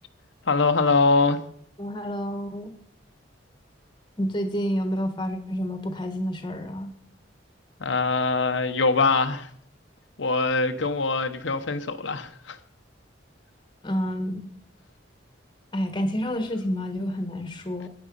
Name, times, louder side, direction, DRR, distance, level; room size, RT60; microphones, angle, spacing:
voice 1, 0.5-1.4 7.8-9.5 10.2-12.6, left 3 dB, 70° left, 0.9 m, -23 dB
voice 2, 1.8-2.7 4.2-6.9 13.8-14.5 15.7-17.9, equal, 25° left, 1.3 m, -29 dB
12.5 x 9.5 x 5.3 m
head